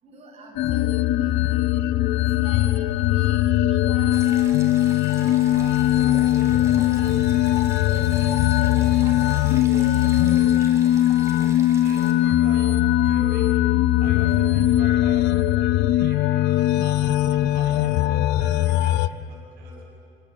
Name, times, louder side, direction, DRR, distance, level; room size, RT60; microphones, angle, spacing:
voice 1, 0.0-1.8 2.4-7.2 7.8-10.9, right 2 dB, 40° right, -3 dB, 7.4 m, -45 dB
sound 1, 0.6-19.1, left 13 dB, 85° left, 0.6 m, -20 dB
Stream, 4.1-12.1, right 2 dB, 15° right, 3.5 m, -44 dB
voice 2, 11.8-13.6 14.0-15.3 15.6-19.0 19.3-19.9, right 3 dB, 75° right, -2 dB, 7.5 m, -45 dB
26.0 x 16.0 x 9.8 m, 2.5 s
cardioid pair, 110°, 17 cm